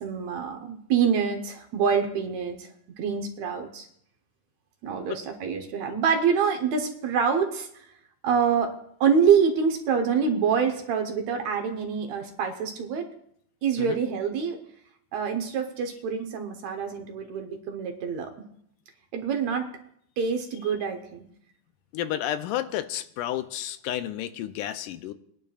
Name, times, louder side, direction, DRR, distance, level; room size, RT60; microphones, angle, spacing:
voice 1, 0.0-2.7 3.0-3.9 4.8-7.9 8.2-13.1 13.6-14.6 15.1-18.3 19.1-19.7 20.2-21.3, right 6 dB, 65° right, 4 dB, 2.1 m, -26 dB
voice 2, 21.9-25.1, left 12 dB, 85° left, 11 dB, 2.2 m, -31 dB
21.5 x 10.5 x 2.4 m, 0.68 s
omnidirectional pair, 3.7 m